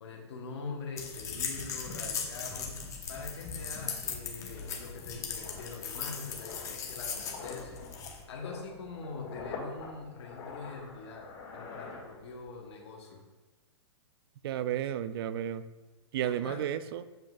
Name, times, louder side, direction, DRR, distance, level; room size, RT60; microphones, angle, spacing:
voice 1, 0.0-2.8 3.1-7.8 8.3-11.3 11.5-13.2 16.2-16.7, left 4 dB, 70° left, 0 dB, 1.1 m, -43 dB
sound 1, 1.0-8.2, left 6 dB, 20° left, 0.8 m, -38 dB
sound 2, 3.6-12.6 12.9-13.2, left 4 dB, 45° left, 2.1 m, -46 dB
voice 2, 14.4-15.6 16.1-17.0, right 11 dB, 55° right, 14 dB, 0.4 m, -32 dB
7.3 x 5.7 x 2.4 m, 1.2 s
hypercardioid pair, 145°, 15 cm